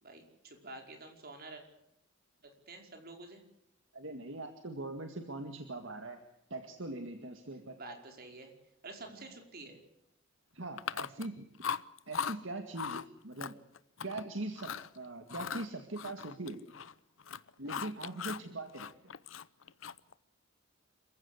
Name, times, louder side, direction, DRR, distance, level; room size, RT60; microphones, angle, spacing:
voice 1, 0.0-1.6 2.4-3.4 7.8-8.5 8.8-9.8, right 2 dB, 50° right, 4 dB, 5.1 m, -49 dB
voice 2, 3.9-6.2 6.5-7.8 9.1-9.3 10.5-11.5 12.1-13.6 14.0-16.6 17.6-18.9, right 2 dB, 70° right, 6 dB, 2.1 m, -41 dB
Chewing mastication, 10.8-11.3 11.6-12.4 12.7-13.0 13.4-14.2 14.6-14.9 15.3-16.9 17.2-18.5 18.7-20.1, left 7 dB, 75° left, 0.8 m, -39 dB
27.5 x 15.5 x 8.2 m, 0.84 s
head